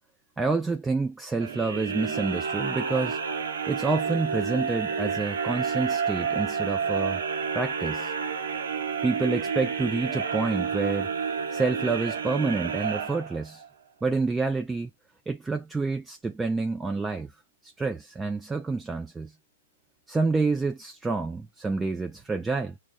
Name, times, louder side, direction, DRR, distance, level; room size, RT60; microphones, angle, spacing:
voice 1, 0.4-3.2 3.7-7.2 7.5-8.1 9.0-11.1 11.5-13.6 14.0-14.9 15.3-17.3 17.6-19.3 20.1-22.7, right 3 dB, 10° right, 0.3 m, -28 dB
sound 1, 1.4-13.7, right 6 dB, 85° right, 0.7 m, -30 dB
6.0 x 2.0 x 2.2 m
hypercardioid pair, 140°, 0 cm